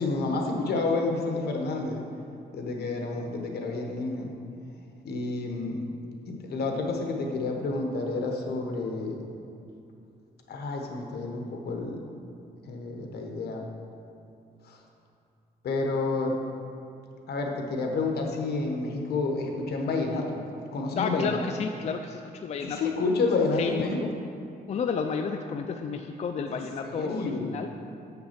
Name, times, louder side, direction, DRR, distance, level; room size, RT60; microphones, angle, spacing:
voice 1, 0.0-2.0 2.5-4.3 5.0-5.8 6.3-9.2 10.5-12.0 12.7-13.6 14.7-14.8 15.6-16.3 17.3-20.4 20.7-21.4 22.6-24.0 26.5-27.6, left 3 dB, 75° left, 2 dB, 1.1 m, -29 dB
voice 2, 20.9-22.8 23.6-23.7 24.0-24.1 24.7-27.8, left 5 dB, 40° left, 5 dB, 0.4 m, -31 dB
7.2 x 5.8 x 5.8 m, 2.6 s
cardioid pair, 130°, 17 cm